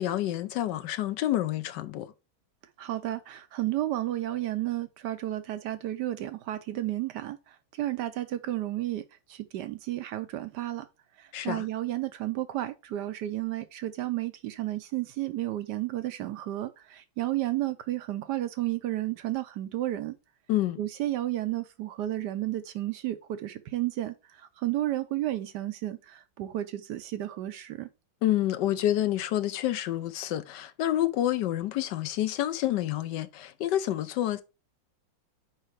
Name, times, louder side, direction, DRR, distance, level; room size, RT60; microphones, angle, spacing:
voice 1, 0.0-2.1 11.3-11.7 20.5-20.8 28.2-34.4, left 13 dB, 75° left, 1.2 m, -28 dB
voice 2, 2.8-7.4 7.8-9.0 9.3-10.8 11.4-20.1 20.8-24.1 24.6-27.9, right 14 dB, 75° right, 1.1 m, -32 dB
4.8 x 4.4 x 4.7 m
omnidirectional pair, 2.0 m